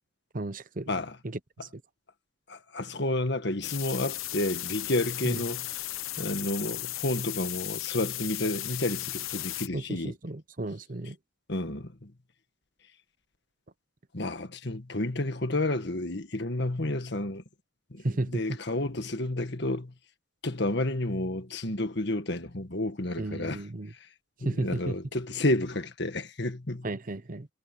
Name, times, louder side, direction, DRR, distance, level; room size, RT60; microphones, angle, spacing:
voice 1, 0.3-0.9 5.2-5.4 9.7-11.2 18.0-18.4 23.2-23.9 24.4-24.9 26.8-27.5, right 2 dB, 40° right, 0.8 m, -33 dB
voice 2, 0.9-1.2 2.5-5.8 6.2-10.1 11.5-12.1 14.1-17.4 17.9-19.9 20.4-23.6 24.4-26.9, left 1 dB, 55° left, 1.7 m, -31 dB
sound 1, 3.6-9.7, left 15 dB, 85° left, 0.9 m, -35 dB
head